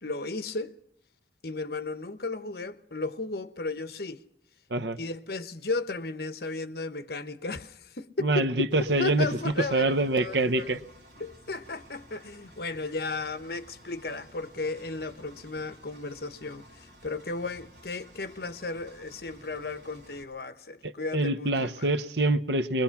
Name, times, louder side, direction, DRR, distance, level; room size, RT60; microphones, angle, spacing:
voice 1, 0.0-0.7 1.4-4.2 5.0-8.7 9.0-10.7 11.2-21.7, left 3 dB, 60° left, 1.1 m, -34 dB
voice 2, 8.2-10.8 20.8-22.8, right 2 dB, 75° right, 1.0 m, -26 dB
Engine, 8.7-20.2, equal, 50° right, 5.4 m, -54 dB
22.5 x 21.0 x 5.9 m
head